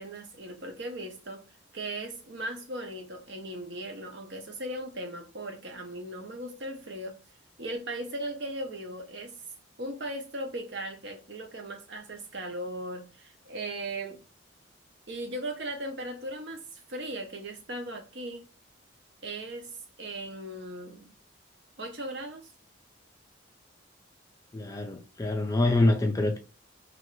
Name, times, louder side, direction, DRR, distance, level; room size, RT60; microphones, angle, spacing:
voice 1, 0.0-1.4 1.7-7.2 7.6-9.4 9.8-14.2 15.1-18.5 19.2-21.1 21.8-22.5, right 1 dB, 60° right, 0.7 m, -38 dB
voice 2, 24.5-26.4, left 2 dB, 15° left, 0.3 m, -25 dB
3.0 x 2.5 x 3.0 m
head